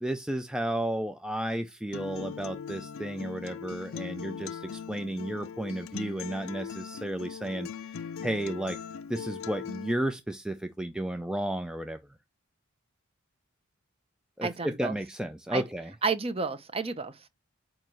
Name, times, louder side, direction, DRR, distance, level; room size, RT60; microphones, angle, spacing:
voice 1, 0.0-8.8 9.1-12.0 14.4-15.9, right 1 dB, 5° right, 0.3 m, -33 dB
Acoustic guitar, 1.9-9.9, left 7 dB, 80° left, 0.5 m, -40 dB
voice 2, 14.4-15.0 15.5-15.6 16.0-17.3, right 4 dB, 30° right, 0.7 m, -31 dB
8.9 x 3.0 x 6.2 m
head